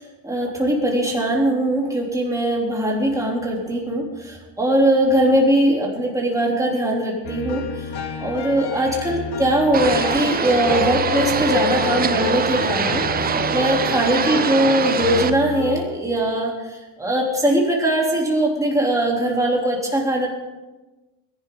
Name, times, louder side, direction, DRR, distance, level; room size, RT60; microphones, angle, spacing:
voice 1, 0.2-7.9 8.2-20.3, right 1 dB, 5° right, -3 dB, 3.5 m, -21 dB
sound 1, 7.2-15.8, left 6 dB, 60° left, 1.6 m, -29 dB
sound 2, 9.7-15.3, right 7 dB, 20° right, 0.4 m, -23 dB
21.0 x 11.5 x 4.0 m, 1.1 s
cardioid pair, 140°, 46 cm